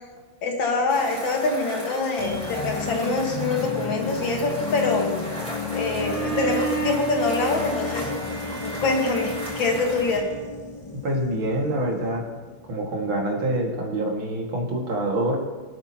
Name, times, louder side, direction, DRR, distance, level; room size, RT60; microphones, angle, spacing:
voice 1, 0.4-5.1 5.7-8.1 8.6-10.3, left 3 dB, 70° left, 1 dB, 2.4 m, -25 dB
sound 1, 0.9-10.2, equal, 5° left, 3.4 m, -37 dB
sound 2, 2.2-13.2 13.6-13.7, left 5 dB, 35° left, 0.5 m, -33 dB
Bowed string instrument, 6.0-11.0, right 3 dB, 40° right, 4.4 m, -32 dB
voice 2, 11.0-12.2 12.7-15.4, right 1 dB, 85° right, -1 dB, 2.9 m, -26 dB
23.5 x 8.8 x 2.9 m, 1.4 s
omnidirectional pair, 2.2 m